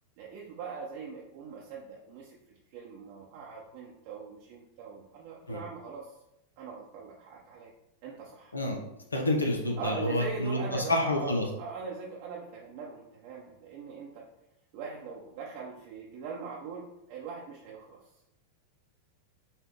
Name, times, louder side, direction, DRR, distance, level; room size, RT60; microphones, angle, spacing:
voice 1, 0.2-2.4 2.7-6.1 6.6-7.7 8.0-8.6 9.8-14.3 14.7-18.0, right 5 dB, 45° right, -3 dB, 0.6 m, -41 dB
voice 2, 9.1-11.5, left 1 dB, 80° left, 1 dB, 0.5 m, -28 dB
5.5 x 2.2 x 3.3 m, 0.83 s
figure-of-eight pair, 90°, 0 cm